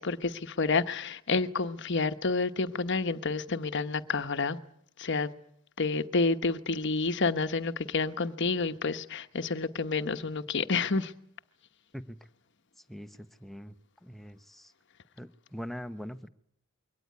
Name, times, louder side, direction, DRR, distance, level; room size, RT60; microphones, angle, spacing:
voice 1, 0.0-4.6 5.0-5.3 5.8-11.1, left 3 dB, 55° left, 1.1 m, -29 dB
voice 2, 12.9-13.7 14.0-14.7 15.2-16.3, equal, ahead, 0.9 m, -42 dB
23.5 x 18.0 x 9.4 m
head